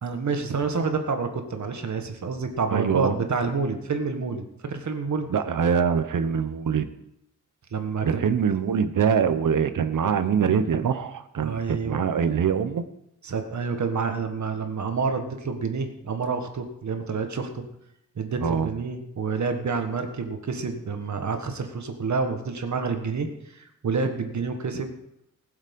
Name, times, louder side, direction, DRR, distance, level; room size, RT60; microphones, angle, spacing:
voice 1, 0.0-5.3 7.7-8.2 11.4-12.0 13.2-17.6 18.1-24.9, right 4 dB, 65° right, 6 dB, 1.6 m, -28 dB
voice 2, 2.7-3.1 5.3-6.9 8.0-12.8 18.4-18.7, right 7 dB, 80° right, 11 dB, 1.0 m, -24 dB
19.5 x 7.2 x 5.4 m, 0.83 s
wide cardioid pair, 150°, 31 cm